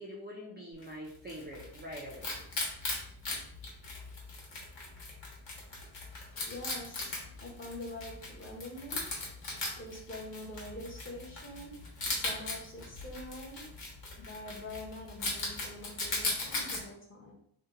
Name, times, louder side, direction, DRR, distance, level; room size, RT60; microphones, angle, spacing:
voice 1, 0.0-2.4, equal, 25° right, -3 dB, 0.3 m, -44 dB
Wild animals, 0.8-16.8, left 2 dB, 65° left, 1.1 m, -39 dB
voice 2, 6.3-9.1 9.8-13.7 14.2-17.3, left 1 dB, 25° left, -2 dB, 0.7 m, -45 dB
2.7 x 2.1 x 3.7 m, 0.68 s
wide cardioid pair, 165°, 47 cm